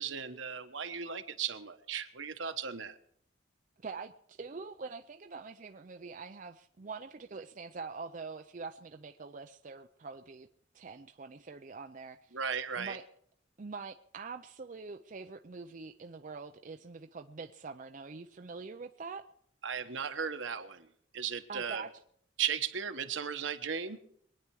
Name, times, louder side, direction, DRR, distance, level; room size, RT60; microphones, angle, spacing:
voice 1, 0.0-3.0 12.3-13.0 19.6-20.9 21.1-21.8 22.4-24.0, right 7 dB, 75° right, 8 dB, 1.1 m, -36 dB
voice 2, 3.8-10.5 10.7-12.4 12.8-13.0 13.6-19.3 21.5-21.9, right 4 dB, 40° right, 6 dB, 0.5 m, -44 dB
23.0 x 9.6 x 4.7 m, 0.67 s
head